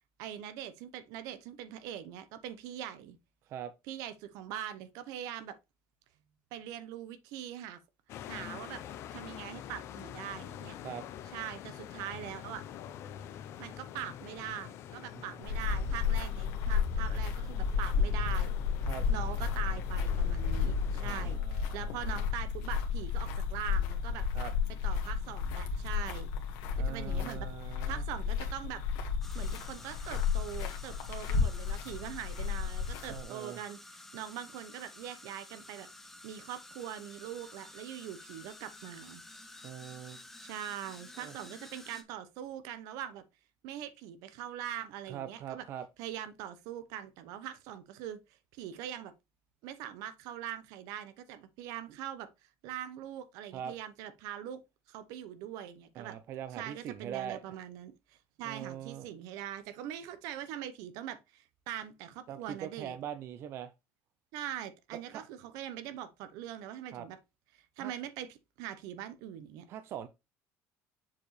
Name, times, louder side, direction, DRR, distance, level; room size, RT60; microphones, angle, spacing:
voice 1, 0.2-3.2 3.9-5.6 6.5-7.8 8.3-8.8 9.1-10.7 11.3-12.6 13.6-18.5 19.1-21.4 21.7-24.3 24.8-26.3 26.7-28.8 29.3-35.9 36.2-39.2 40.4-43.2 43.6-45.6 46.0-48.2 48.5-49.1 49.6-52.3 52.6-54.6 54.9-56.2 56.6-63.0 64.3-67.2 67.5-69.7, right 10 dB, 75° right, 0.8 m, -42 dB
sound 1, 8.1-21.4, left 11 dB, 50° left, 0.6 m, -46 dB
sound 2, 15.4-33.2, left 6 dB, 85° left, 1.5 m, -32 dB
voice 2, 21.0-22.2 24.3-24.5 26.7-28.0 33.1-33.6 39.6-40.2 41.2-41.3 45.1-45.9 53.5-53.7 56.0-57.6 58.4-59.1 62.3-63.7 65.1-65.2 66.9-67.1 67.8-67.9 69.7-70.1, right 10 dB, 45° right, 0.5 m, -42 dB
sound 3, 29.2-42.0, left 2 dB, 5° left, 0.8 m, -51 dB
7.2 x 4.6 x 3.1 m
cardioid pair, 165°, 6 cm